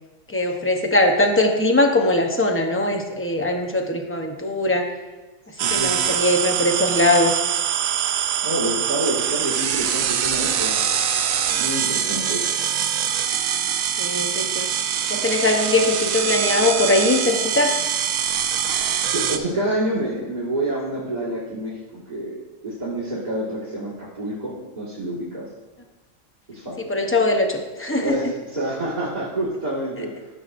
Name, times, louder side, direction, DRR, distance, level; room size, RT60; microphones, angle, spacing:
voice 1, 0.3-4.9 5.7-7.4 14.0-14.7 15.1-17.7 26.8-28.3, left 2 dB, 15° left, 2 dB, 0.5 m, -21 dB
voice 2, 5.5-5.9 8.4-10.7 11.6-12.4 19.1-25.4 26.5-26.8 28.0-30.1, right 1 dB, 30° right, -9 dB, 1.9 m, -28 dB
sound 1, 5.6-19.4, right 9 dB, 85° right, 1.0 m, -23 dB
13.0 x 6.5 x 2.5 m, 1.2 s
omnidirectional pair, 1.4 m